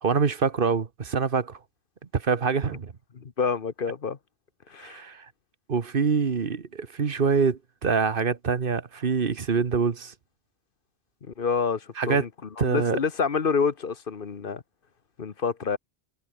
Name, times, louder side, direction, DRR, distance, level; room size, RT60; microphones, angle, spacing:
voice 1, 0.0-1.6 2.1-2.9 4.8-5.3 5.7-10.1 12.0-12.2 12.6-13.0, right 5 dB, 60° right, 1.4 m, -25 dB
voice 2, 3.1-4.2 4.7-5.0 11.3-12.3 12.6-14.6 15.2-15.8, left 5 dB, 60° left, 1.3 m, -28 dB
omnidirectional pair, 1.0 m